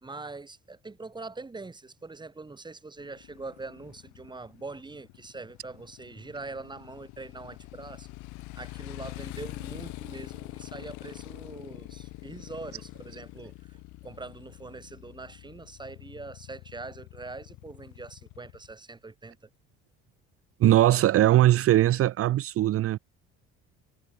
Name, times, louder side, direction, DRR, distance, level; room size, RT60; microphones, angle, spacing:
voice 1, 0.0-8.1 8.5-13.8 14.0-19.4, right 3 dB, 15° right, 2.8 m, -43 dB
Motorcycle, 3.0-18.7, left 22 dB, 80° left, 1.2 m, -45 dB
voice 2, 20.6-23.0, right 14 dB, 50° right, 0.8 m, -20 dB
cardioid pair, 110°, 29 cm